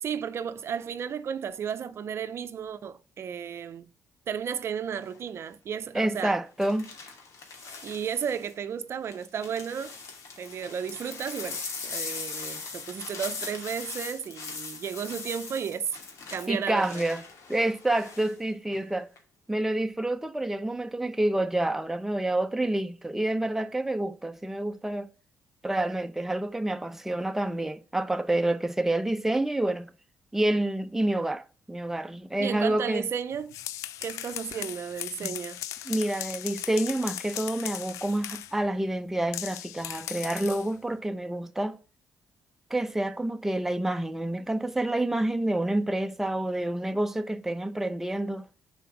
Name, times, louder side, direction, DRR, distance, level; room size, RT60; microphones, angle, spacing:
voice 1, 0.0-3.9 4.3-6.4 7.8-9.9 10.4-15.9 16.3-17.0 32.4-33.5 34.0-35.6, right 7 dB, 55° right, 0.6 m, -33 dB
sound 1, 5.0-5.3 6.6-8.5 9.1-18.3 18.7-19.2, left 4 dB, 70° left, 2.2 m, -40 dB
voice 2, 5.9-6.9 16.5-17.2 17.5-19.1 19.5-25.1 25.6-29.9 30.3-33.1 35.2-35.3 35.9-41.8 42.7-48.5, right 1 dB, 5° right, 0.7 m, -28 dB
sound 2, 33.3-38.6 39.3-40.7, left 12 dB, 90° left, 0.5 m, -38 dB
6.8 x 4.3 x 5.9 m
cardioid pair, 80°, 5 cm